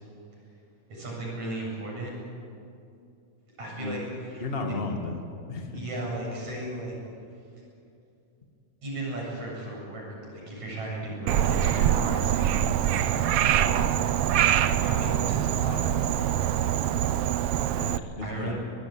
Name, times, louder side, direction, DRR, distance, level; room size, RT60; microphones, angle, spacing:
voice 1, 0.9-2.1 3.6-4.5 5.7-6.9 8.8-12.6 13.0-16.4 18.2-18.5, right 1 dB, 60° right, -2 dB, 9.4 m, -36 dB
voice 2, 4.4-5.2 5.5-5.8 17.7-18.5, left 3 dB, 20° left, 4 dB, 1.9 m, -33 dB
Frog, 11.3-18.0, right 11 dB, 85° right, 1.3 m, -24 dB
24.0 x 20.5 x 8.9 m, 2.5 s
omnidirectional pair, 3.6 m